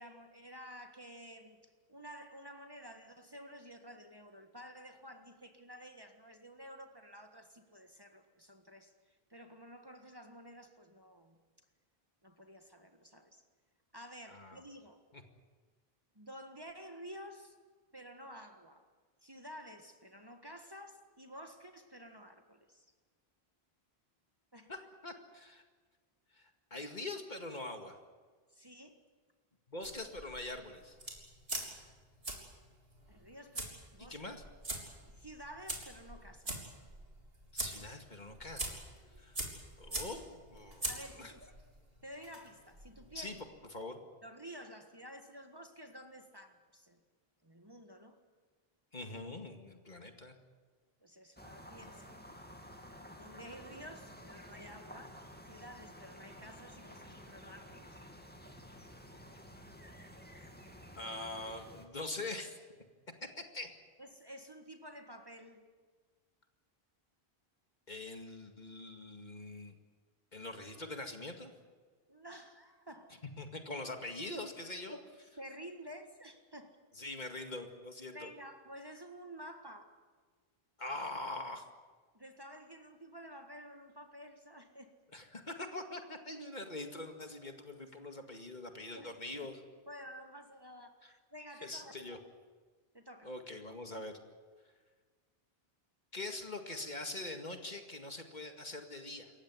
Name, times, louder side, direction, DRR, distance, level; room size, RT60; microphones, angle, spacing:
voice 1, 0.0-1.6 1.9-11.4 12.2-13.4 13.9-15.0 16.2-17.6 17.9-18.9 19.2-22.9 24.5-24.7 28.5-29.0 33.1-34.2 35.1-36.7 40.9-41.4 42.0-43.4 44.2-47.0 47.4-48.2 51.0-52.2 53.2-55.2 55.5-57.9 64.0-65.6 72.1-73.2 74.9-76.8 78.1-79.9 82.1-84.9 88.9-89.5 89.9-92.3 92.9-93.3, equal, 25° right, 6 dB, 1.7 m, -51 dB
voice 2, 14.3-14.6 15.1-15.2 24.7-25.6 26.4-28.0 29.7-31.0 34.0-34.4 37.5-38.8 39.2-39.4 39.8-40.9 41.2-41.3 43.1-43.4 43.7-44.0 48.9-50.4 61.0-62.6 63.2-63.7 67.9-69.7 70.3-71.5 73.4-75.0 77.0-78.3 80.8-81.7 85.1-89.6 91.0-91.1 91.6-92.2 93.2-94.2 96.1-99.3, left 2 dB, 45° left, 5 dB, 2.3 m, -43 dB
sound 1, 29.8-43.4, right 1 dB, 70° right, 4.0 m, -44 dB
sound 2, 51.4-61.9, equal, 10° left, 2.4 m, -52 dB
27.5 x 15.0 x 9.7 m, 1.5 s
omnidirectional pair, 1.0 m